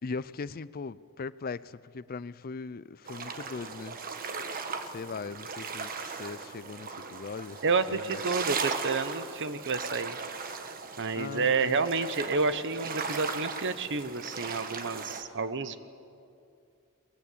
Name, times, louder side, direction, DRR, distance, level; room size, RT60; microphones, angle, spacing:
voice 1, 0.0-4.0 4.9-8.2 11.2-11.8, left 4 dB, 45° left, 18 dB, 0.5 m, -39 dB
sound 1, 3.1-15.2, right 5 dB, 40° right, 1.4 m, -37 dB
voice 2, 7.6-10.2 11.0-15.8, right 4 dB, 55° right, 12 dB, 1.0 m, -29 dB
22.5 x 21.0 x 8.5 m, 2.5 s
head